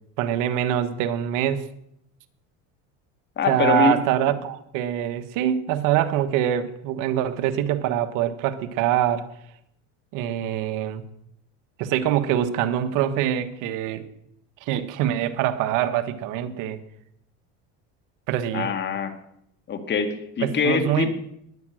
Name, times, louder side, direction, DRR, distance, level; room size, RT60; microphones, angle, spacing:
voice 1, 0.2-1.6 3.5-9.3 10.1-11.0 11.8-14.0 14.6-16.8 18.3-18.7 20.4-21.1, right 11 dB, 65° right, 11 dB, 1.3 m, -24 dB
voice 2, 3.4-4.0 18.5-19.1 19.7-21.1, left 6 dB, 35° left, 8 dB, 2.0 m, -24 dB
20.5 x 8.8 x 6.3 m, 0.75 s
supercardioid pair, 120°, 33 cm